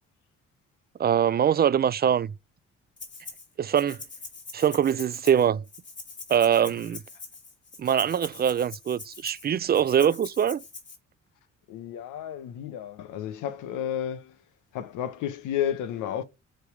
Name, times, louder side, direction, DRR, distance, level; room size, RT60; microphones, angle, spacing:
voice 1, 1.0-2.3 3.6-4.0 4.5-5.6 6.3-7.0 7.8-10.6, right 9 dB, 35° right, 0.4 m, -23 dB
Rattle (instrument), 3.0-3.5 3.7-11.0, left 4 dB, 35° left, 2.5 m, -43 dB
voice 2, 11.7-14.4 14.7-16.2, left 10 dB, 90° left, 0.8 m, -32 dB
7.8 x 3.4 x 4.8 m
cardioid pair, 90°, 30 cm